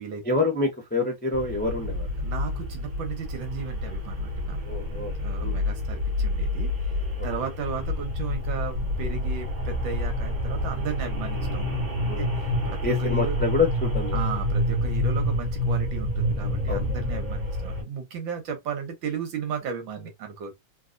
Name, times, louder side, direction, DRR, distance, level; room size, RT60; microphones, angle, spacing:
voice 1, 0.2-2.1 4.6-5.6 7.2-7.3 12.1-12.2 12.8-14.2 16.7-16.9, left 3 dB, 15° left, 0.4 m, -27 dB
sound 1, 1.3-17.8, left 1 dB, 50° right, 1.7 m, -28 dB
voice 2, 2.2-6.7 7.2-13.4 14.1-20.5, right 6 dB, 80° right, 1.7 m, -35 dB
3.9 x 2.4 x 2.5 m
omnidirectional pair, 2.1 m